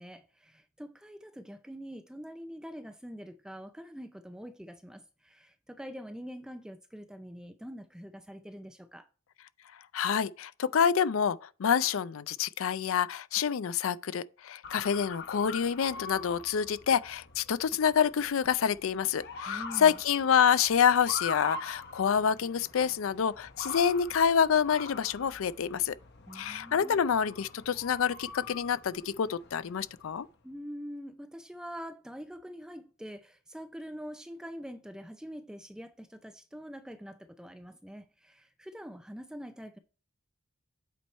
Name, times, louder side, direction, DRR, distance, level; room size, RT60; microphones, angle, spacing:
voice 1, 0.0-9.1 19.5-20.0 26.3-27.0 30.4-39.8, equal, 5° right, 0.4 m, -44 dB
voice 2, 9.9-25.9 26.3-30.3, left 7 dB, 70° left, 0.4 m, -27 dB
Motor vehicle (road) / Siren, 14.6-30.2, left 4 dB, 55° left, 0.8 m, -44 dB
8.3 x 4.6 x 4.2 m
head